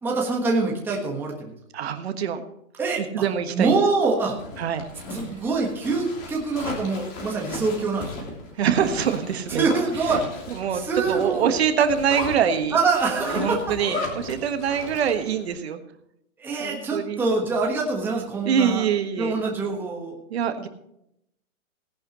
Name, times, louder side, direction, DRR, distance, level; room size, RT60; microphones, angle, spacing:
voice 1, 0.0-1.5 2.8-3.0 3.5-4.4 5.1-8.3 9.5-10.4 10.7-11.6 12.7-13.6 16.4-18.8 19.2-20.2, right 3 dB, 5° right, -1 dB, 1.4 m, -25 dB
voice 2, 1.7-2.4 3.0-3.8 4.6-4.9 5.1-5.3 8.6-9.7 10.5-10.8 11.1-12.8 13.2-15.8 16.6-17.2 18.4-19.3 20.3-20.7, right 8 dB, 50° right, 8 dB, 1.5 m, -24 dB
Zipper (clothing), 4.2-15.4, left 3 dB, 25° left, 3.1 m, -36 dB
18.0 x 11.0 x 3.0 m, 0.77 s
hypercardioid pair, 160°, 41 cm